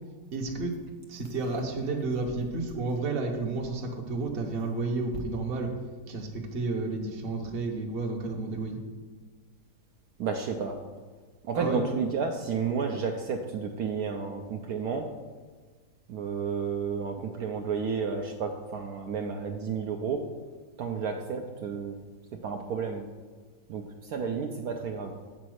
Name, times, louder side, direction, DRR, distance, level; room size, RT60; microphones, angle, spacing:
voice 1, 0.3-0.7 1.1-5.7 6.1-8.8 11.5-11.8, right 3 dB, 40° right, 3 dB, 1.0 m, -31 dB
voice 2, 10.2-10.8 11.4-15.1 16.1-20.2 20.8-22.0 22.4-23.0 23.7-25.1, right 5 dB, 70° right, 3 dB, 1.0 m, -31 dB
7.7 x 4.1 x 6.3 m, 1.5 s
omnidirectional pair, 1.8 m